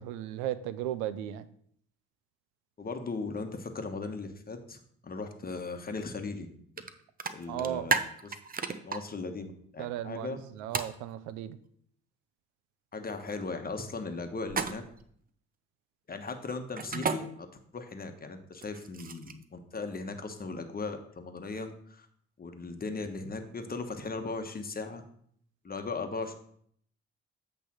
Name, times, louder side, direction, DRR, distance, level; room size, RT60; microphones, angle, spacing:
voice 1, 0.0-1.5 7.5-7.9 9.8-11.6, right 12 dB, 90° right, 0.5 m, -35 dB
voice 2, 2.8-6.5 7.3-8.3 8.8-10.4 12.9-14.8 16.1-17.5 17.7-22.1 22.4-25.0 25.6-26.3, left 3 dB, 30° left, 1.2 m, -38 dB
sound 1, 6.8-6.9 7.2-9.0 10.7-10.9 14.5-15.0 16.8-17.2 18.5-19.4, right 5 dB, 30° right, 0.7 m, -31 dB
8.2 x 3.4 x 6.1 m
supercardioid pair, 60°, 29 cm